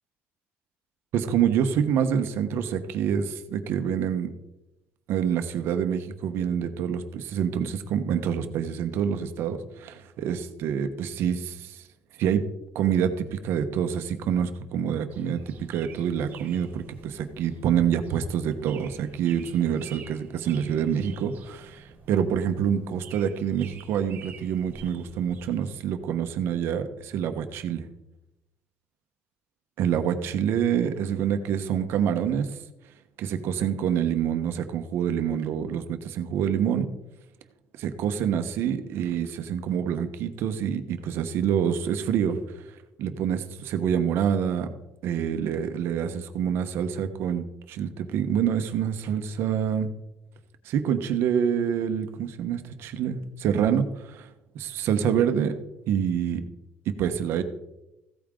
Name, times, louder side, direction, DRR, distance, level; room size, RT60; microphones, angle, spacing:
voice 1, 1.1-4.3 5.1-11.8 12.2-12.5 12.7-27.9 29.8-32.6 33.2-36.9 37.8-42.6 43.0-44.7 45.0-49.9 50.6-54.3 54.5-55.5 55.9-56.5 56.9-57.4, right 8 dB, 65° right, 8 dB, 1.1 m, -26 dB
sound 1, 15.1-25.8, right 5 dB, 45° right, 1.6 m, -48 dB
15.5 x 8.8 x 3.8 m, 0.94 s
cardioid pair, 170°, 4 cm